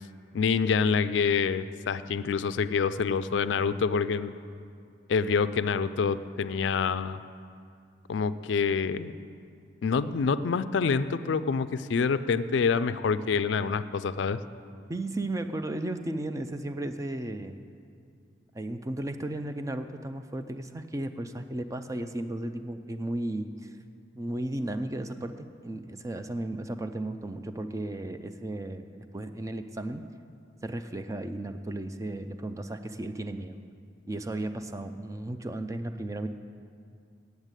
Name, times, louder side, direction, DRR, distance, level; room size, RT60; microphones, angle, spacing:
voice 1, 0.3-4.3 5.1-7.2 8.1-9.1 9.8-14.4, left 5 dB, 75° left, 13 dB, 0.4 m, -26 dB
voice 2, 14.9-17.6 18.5-23.8 24.1-30.0 30.6-33.6 34.0-36.3, right 1 dB, 15° right, 8 dB, 0.4 m, -34 dB
8.2 x 8.1 x 9.0 m, 2.3 s
head